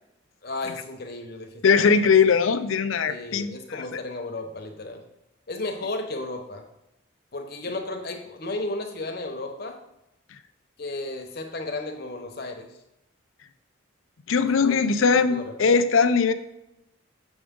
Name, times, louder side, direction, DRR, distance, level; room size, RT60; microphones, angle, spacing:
voice 1, 0.4-2.1 3.1-5.0 5.5-6.6 7.3-9.8 10.8-12.7 14.6-14.8 15.1-15.5, left 2 dB, 50° left, 4 dB, 1.0 m, -34 dB
voice 2, 1.6-3.8 14.3-16.3, left 5 dB, 75° left, 11 dB, 0.5 m, -20 dB
7.2 x 6.1 x 3.7 m, 0.88 s
head